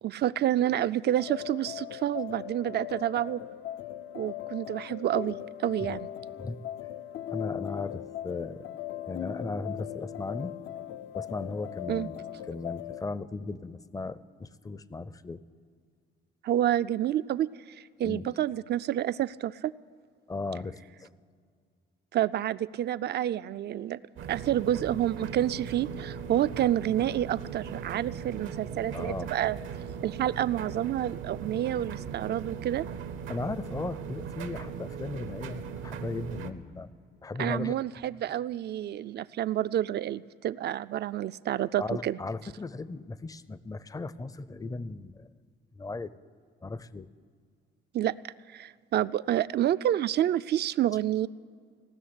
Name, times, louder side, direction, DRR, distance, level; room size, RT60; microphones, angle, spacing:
voice 1, 0.0-3.4 4.1-6.1 11.9-12.1 16.4-17.5 17.8-19.7 22.1-24.0 24.3-29.6 30.0-32.8 37.4-42.2 47.9-51.3, right 12 dB, 55° right, 15 dB, 0.4 m, -29 dB
sound 1, 1.2-13.1, left 12 dB, 75° left, 0.5 m, -39 dB
voice 2, 7.3-8.7 9.1-10.5 11.1-12.2 12.5-15.4 18.0-18.3 20.3-21.1 28.9-29.3 33.3-36.9 37.2-37.8 41.8-45.3 45.8-46.1 46.6-47.1, left 3 dB, 15° left, 17 dB, 0.5 m, -36 dB
sound 2, 24.2-36.5, right 7 dB, 80° right, 0.9 m, -39 dB
17.5 x 6.5 x 9.6 m, 2.2 s
cardioid pair, 90°, 20 cm